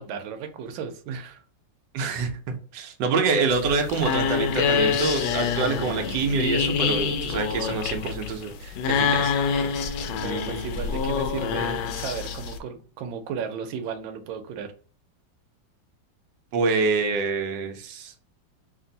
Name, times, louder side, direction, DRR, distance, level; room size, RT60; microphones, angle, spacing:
voice 1, 0.0-1.4 10.2-14.7, right 6 dB, 90° right, 7 dB, 1.4 m, -34 dB
voice 2, 1.9-9.3 16.5-18.1, right 4 dB, 70° right, 4 dB, 1.3 m, -26 dB
sound 1, 3.5-12.6, left 6 dB, 90° left, 1.4 m, -26 dB
3.4 x 2.6 x 3.9 m, 0.41 s
omnidirectional pair, 2.1 m